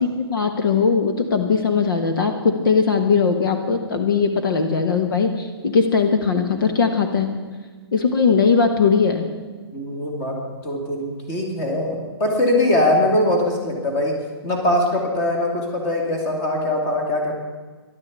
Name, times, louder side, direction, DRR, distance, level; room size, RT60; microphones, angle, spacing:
voice 1, 0.0-7.3 7.9-9.2, left 5 dB, 55° left, 5 dB, 1.5 m, -19 dB
voice 2, 9.7-10.4 10.6-14.2 14.4-17.3, left 1 dB, 15° left, 2 dB, 2.3 m, -21 dB
13.5 x 11.5 x 8.3 m, 1.4 s
hypercardioid pair, 175°, 14 cm